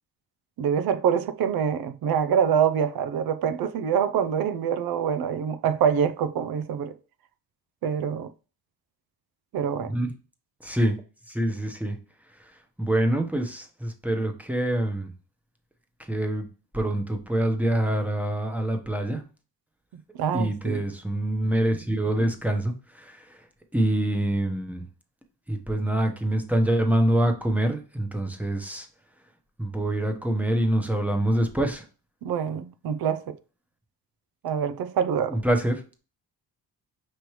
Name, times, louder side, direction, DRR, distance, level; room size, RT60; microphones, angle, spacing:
voice 1, 0.6-7.0 7.8-8.3 9.5-9.9 20.1-20.8 32.2-33.4 34.4-35.4, right 7 dB, 65° right, 0.6 m, -25 dB
voice 2, 10.6-11.0 11.3-12.0 12.8-15.1 16.1-16.5 16.7-19.2 20.3-23.4 23.7-24.9 25.5-28.9 29.6-31.8 35.3-36.0, right 1 dB, 5° right, 0.9 m, -25 dB
5.3 x 3.2 x 3.1 m
cardioid pair, 95°, 39 cm